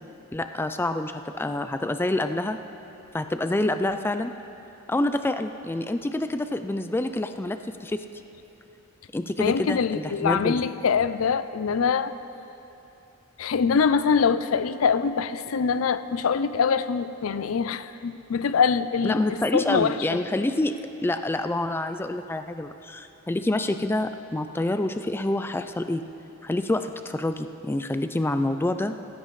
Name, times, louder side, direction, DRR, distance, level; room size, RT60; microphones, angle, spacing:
voice 1, 0.3-2.6 3.1-4.3 4.9-8.0 9.1-10.6 19.0-20.8 21.0-26.0 26.4-29.0, left 1 dB, 10° left, 9 dB, 0.3 m, -27 dB
voice 2, 9.4-12.1 13.4-20.2, left 6 dB, 75° left, 13 dB, 0.4 m, -24 dB
17.5 x 15.5 x 3.2 m, 2.9 s
head